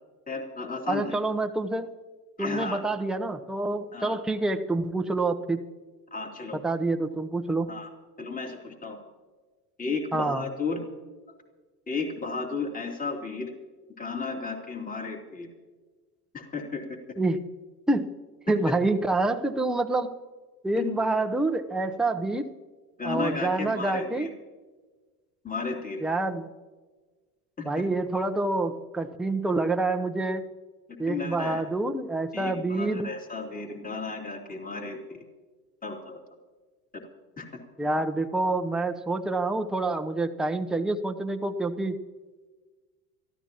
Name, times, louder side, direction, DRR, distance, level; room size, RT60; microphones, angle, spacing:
voice 1, 0.3-1.1 2.4-2.8 3.9-4.2 6.1-6.6 7.7-7.9 8.2-9.0 9.8-10.8 11.9-13.5 14.0-15.5 16.3-17.0 20.8-20.9 23.0-24.3 25.4-26.0 27.6-27.8 31.1-31.6 32.3-35.2 35.8-36.2 37.4-37.6, left 4 dB, 15° left, 1 dB, 3.1 m, -33 dB
voice 2, 0.9-1.9 2.4-5.6 6.5-7.7 10.1-10.5 17.2-17.4 17.9-18.1 18.5-20.2 20.6-22.5 23.0-24.3 26.0-26.5 27.6-30.4 31.0-33.1 37.8-42.0, right 2 dB, ahead, 5 dB, 0.8 m, -27 dB
26.0 x 14.5 x 3.0 m, 1.4 s
hypercardioid pair, 80°, 47 cm